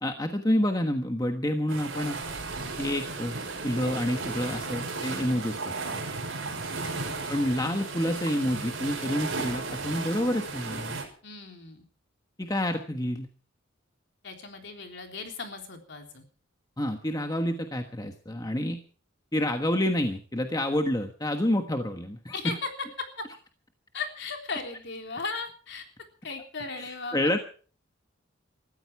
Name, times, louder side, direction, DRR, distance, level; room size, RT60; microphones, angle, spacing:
voice 1, 0.0-2.2 2.8-3.4 3.6-5.7 7.3-11.0 12.4-13.3 16.8-18.8 19.3-22.6 26.8-27.4, left 1 dB, 20° left, 5 dB, 1.3 m, -28 dB
sound 1, 1.7-11.0, right 3 dB, 60° right, 6.0 m, -35 dB
voice 2, 6.8-7.2 11.2-11.8 14.2-16.2 22.3-22.6 23.2-23.3 23.9-25.8 26.2-27.3, left 4 dB, 55° left, 4 dB, 3.6 m, -37 dB
21.0 x 14.5 x 4.6 m, 0.42 s
head